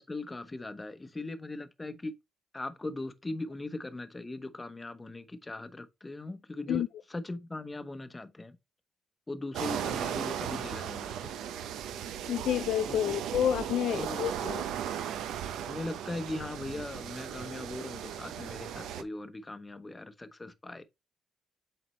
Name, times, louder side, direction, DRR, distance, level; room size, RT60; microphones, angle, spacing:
voice 1, 0.0-2.1 2.5-8.6 9.3-11.3 12.9-13.1 13.9-14.2 15.7-20.8, left 2 dB, 20° left, 0.9 m, -39 dB
sound 1, 9.5-19.0, right 9 dB, 85° right, 0.6 m, -36 dB
voice 2, 12.3-14.6, left 10 dB, 75° left, 0.3 m, -29 dB
7.4 x 4.3 x 3.1 m
cardioid pair, 90°, 0 cm